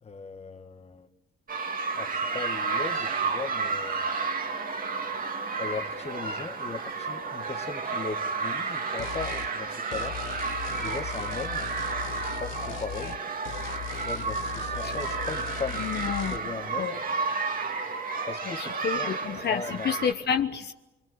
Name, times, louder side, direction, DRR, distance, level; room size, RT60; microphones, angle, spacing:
voice 1, 0.0-1.1 2.0-4.1 5.6-10.2 10.7-11.7 12.4-13.2 14.0-17.0 18.2-19.1 19.4-20.0, left 4 dB, 30° left, 8 dB, 1.6 m, -38 dB
sound 1, 1.5-20.1, right 4 dB, 45° right, 2.3 m, -32 dB
sound 2, 9.0-9.5 9.9-13.2 13.4-16.4, left 12 dB, 90° left, 1.0 m, -39 dB
voice 2, 15.8-16.4 16.8-17.0 18.6-20.7, left 7 dB, 55° left, 6 dB, 1.1 m, -29 dB
25.5 x 24.0 x 8.0 m, 1.0 s
cardioid pair, 90°, 20 cm